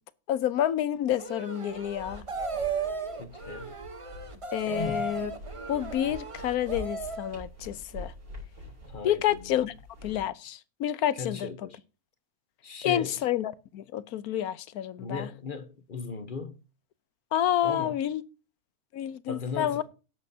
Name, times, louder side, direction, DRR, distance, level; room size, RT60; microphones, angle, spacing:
voice 1, 0.3-2.2 4.5-5.3 5.7-8.1 9.0-9.7 10.0-11.5 12.8-15.3 17.3-18.2 18.9-19.8, left 11 dB, 85° left, 1.2 m, -29 dB
sound 1, 1.2-7.3, right 4 dB, 25° right, 0.9 m, -35 dB
sound 2, 1.7-10.2, left 1 dB, 75° right, 4.1 m, -45 dB
voice 2, 3.2-3.7 4.7-5.1 8.8-9.5 11.2-11.8 12.6-13.2 15.0-16.6 17.6-18.0 19.3-19.8, left 4 dB, 40° left, 1.1 m, -37 dB
17.5 x 7.6 x 2.8 m
omnidirectional pair, 1.5 m